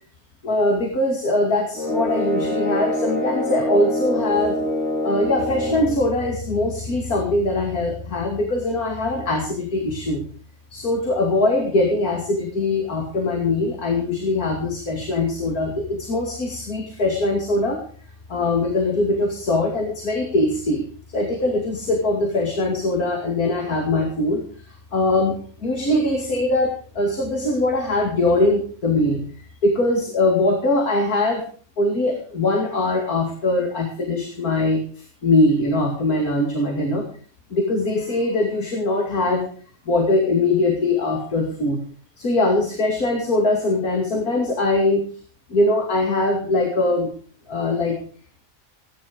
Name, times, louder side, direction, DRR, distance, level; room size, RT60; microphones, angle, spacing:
voice 1, 0.4-4.6 5.0-10.2 10.7-17.8 18.3-25.3 25.6-29.2 29.6-31.4 31.8-37.1 37.5-39.5 39.9-41.8 42.2-45.0 45.5-47.1 47.5-48.0, left 2 dB, 75° left, 1 dB, 3.0 m, -22 dB
sound 1, 1.7-6.0, left 1 dB, 50° left, 4.4 m, -25 dB
16.5 x 11.0 x 5.1 m, 0.43 s
omnidirectional pair, 1.6 m